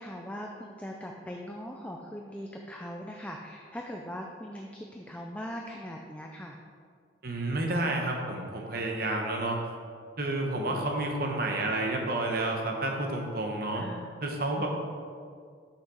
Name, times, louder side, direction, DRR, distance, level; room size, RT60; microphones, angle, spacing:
voice 1, 0.0-6.6 10.7-10.8 13.7-14.1 14.6-14.7, equal, 5° left, 1 dB, 0.4 m, -40 dB
voice 2, 7.2-9.6 10.2-13.8 14.2-14.7, right 2 dB, 55° right, 1 dB, 1.0 m, -30 dB
6.5 x 5.8 x 4.8 m, 2.1 s
head